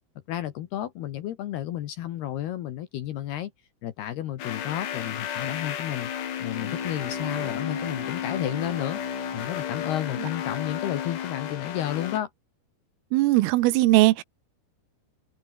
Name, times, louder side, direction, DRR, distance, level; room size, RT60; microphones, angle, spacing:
voice 1, 0.3-3.5 3.8-6.1 6.4-9.0 9.3-12.3, left 12 dB, 70° left, 2.7 m, -32 dB
sound 1, 4.4-12.2, left 9 dB, 85° left, 6.1 m, -33 dB
Bowed string instrument, 6.4-11.1, right 4 dB, 40° right, 6.7 m, -43 dB
voice 2, 13.1-14.2, right 18 dB, 80° right, 3.5 m, -19 dB
omnidirectional pair, 6.0 m